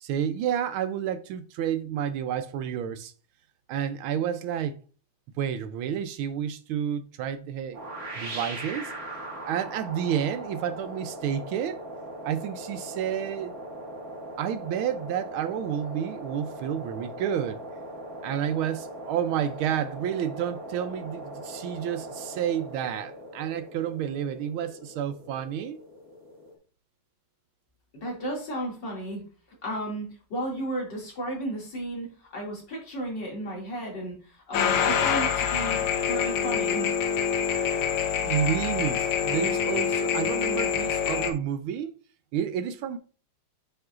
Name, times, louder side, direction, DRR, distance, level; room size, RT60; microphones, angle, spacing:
voice 1, 0.0-3.1 3.7-4.8 5.4-7.8 8.2-8.9 9.5-11.8 12.2-13.5 14.4-17.6 18.2-25.8 38.2-42.0 42.3-43.0, right 9 dB, 75° right, 1.3 m, -30 dB
sound 1, 7.7-26.6, right 1 dB, 45° right, 2.0 m, -40 dB
voice 2, 27.9-29.2 29.6-35.8 36.1-36.9, right 1 dB, 55° left, 2.9 m, -34 dB
sound 2, 34.5-41.3, left 7 dB, 80° left, 1.7 m, -26 dB
7.9 x 5.6 x 2.4 m
omnidirectional pair, 2.4 m